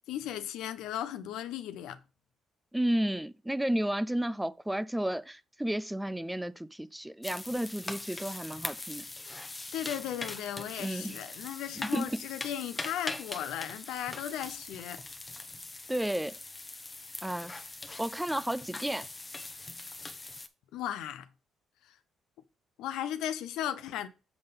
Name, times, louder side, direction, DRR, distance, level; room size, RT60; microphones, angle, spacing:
voice 1, 0.1-2.0 9.7-15.0 20.7-21.3 22.8-24.1, left 11 dB, 90° left, 0.6 m, -36 dB
voice 2, 2.7-9.0 10.8-11.2 11.9-12.2 15.9-16.3 17.2-17.5 18.0-19.1, right 1 dB, 5° right, 0.4 m, -32 dB
sound 1, 7.2-20.5, left 2 dB, 20° left, 0.8 m, -42 dB
7.1 x 3.9 x 5.2 m
cardioid pair, 90°, 0 cm